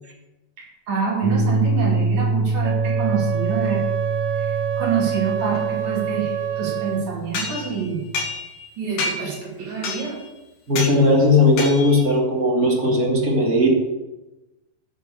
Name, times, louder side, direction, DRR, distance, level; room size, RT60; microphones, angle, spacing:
voice 1, 0.6-3.9 4.3-8.1 8.8-10.2, right 6 dB, 50° right, -3 dB, 3.5 m, -26 dB
sound 1, 1.2-8.3, right 3 dB, 55° left, 2.2 m, -26 dB
Wind instrument woodwind instrument, 2.6-7.1, right 10 dB, 80° right, 1.9 m, -27 dB
sound 2, 7.3-8.7 9.0-9.4 9.8-10.3 10.8-11.0 11.6-12.1, left 3 dB, 75° left, 3.6 m, -29 dB
voice 2, 10.7-13.7, left 2 dB, 25° right, -3 dB, 2.3 m, -17 dB
8.9 x 7.4 x 7.0 m, 1.0 s
omnidirectional pair, 4.4 m